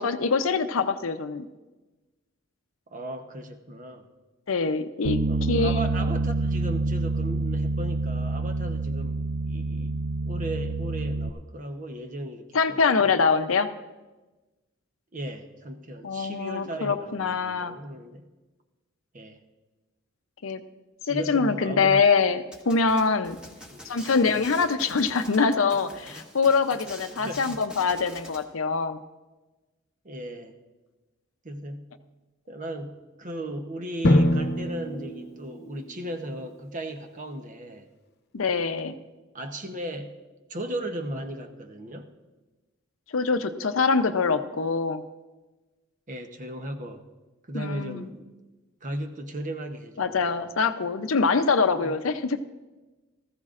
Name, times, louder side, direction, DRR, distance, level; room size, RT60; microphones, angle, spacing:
voice 1, 0.0-1.5 4.5-5.2 5.5-5.8 12.5-13.7 16.0-17.8 20.4-20.6 21.1-23.4 23.8-29.0 38.3-38.9 43.1-45.0 47.5-48.1 50.0-52.4, left 4 dB, 85° left, 9 dB, 0.7 m, -24 dB
voice 2, 2.9-4.1 5.3-10.0 10.2-13.1 15.1-18.2 19.1-19.4 21.1-22.1 23.7-24.0 27.2-27.6 30.0-30.6 31.4-31.9 32.5-37.9 39.3-40.2 40.5-42.1 46.1-47.0 47.5-48.3 48.8-50.3 51.8-52.0, right 1 dB, 40° right, 6 dB, 0.9 m, -36 dB
Bass guitar, 5.0-11.3, right 3 dB, 80° right, 0.5 m, -27 dB
sound 1, 22.5-28.4, left 1 dB, 5° right, 1.5 m, -45 dB
Drum, 34.0-36.0, left 1 dB, 55° left, 0.9 m, -24 dB
18.5 x 14.5 x 2.5 m, 1.2 s
head